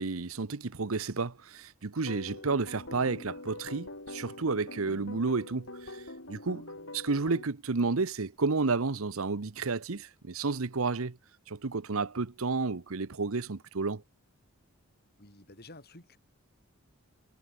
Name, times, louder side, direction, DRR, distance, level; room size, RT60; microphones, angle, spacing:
voice 1, 0.0-6.0 6.3-6.6 6.9-11.2 11.5-14.0, right 4 dB, 75° right, 0.9 m, -31 dB
sound 1, 2.0-7.5, left 1 dB, 60° left, 7.6 m, -44 dB
voice 2, 15.2-16.2, left 2 dB, 45° left, 5.2 m, -51 dB
head